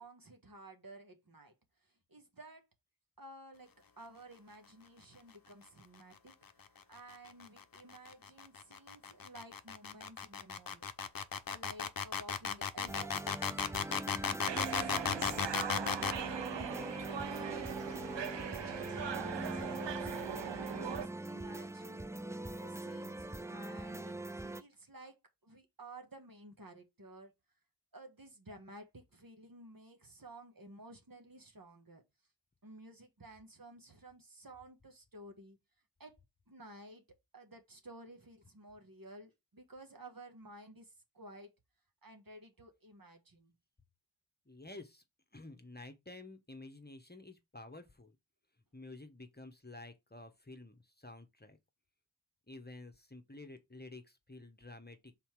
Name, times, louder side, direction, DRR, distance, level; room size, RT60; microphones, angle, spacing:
voice 1, 0.0-1.5 1.8-2.6 3.2-3.7 4.0-6.3 6.9-10.9 11.5-16.9 17.3-17.9 18.3-22.0 22.6-27.3 27.9-32.0 32.6-35.6 36.0-36.2 36.5-37.0 37.3-41.5 42.0-43.5, right 1 dB, 55° right, 1.5 m, -54 dB
sound 1, 7.0-16.2, left 6 dB, 55° left, 0.7 m, -35 dB
sound 2, 12.9-24.6, right 1 dB, 5° right, 0.4 m, -42 dB
sound 3, 14.5-21.1, right 8 dB, 80° right, 0.6 m, -40 dB
voice 2, 44.5-45.0 45.3-48.1 48.7-51.6 52.5-55.1, left 2 dB, 25° left, 1.1 m, -51 dB
5.6 x 4.1 x 4.7 m
wide cardioid pair, 55°, 43 cm